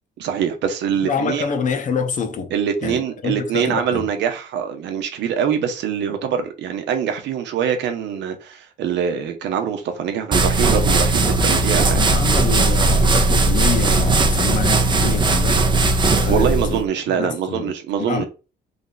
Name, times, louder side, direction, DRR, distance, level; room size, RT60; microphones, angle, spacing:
voice 1, 0.2-1.5 2.5-12.1 16.3-18.3, right 8 dB, 80° right, 0.8 m, -24 dB
voice 2, 1.0-2.5 2.8-4.1 11.8-15.7 16.2-16.8 17.2-17.7 18.0-18.3, left 6 dB, 45° left, 0.7 m, -26 dB
sound 1, 10.3-16.8, right 2 dB, 25° right, 0.5 m, -17 dB
3.4 x 2.6 x 3.9 m
cardioid pair, 130°, 18 cm